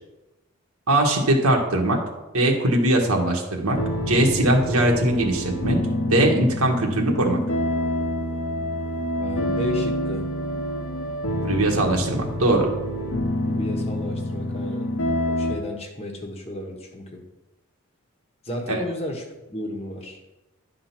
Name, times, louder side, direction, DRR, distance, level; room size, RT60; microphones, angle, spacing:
voice 1, 0.9-2.0 2.3-3.8 4.1-5.8 6.1-7.4 11.4-12.7 18.7-18.8, right 1 dB, 85° right, 1 dB, 1.5 m, -20 dB
sound 1, 3.7-15.6, left 1 dB, 70° left, 1.0 m, -27 dB
voice 2, 9.2-10.3 13.4-14.9 15.3-17.2 18.4-20.2, left 1 dB, 30° left, 1 dB, 1.2 m, -33 dB
10.5 x 3.9 x 5.9 m, 1.0 s
head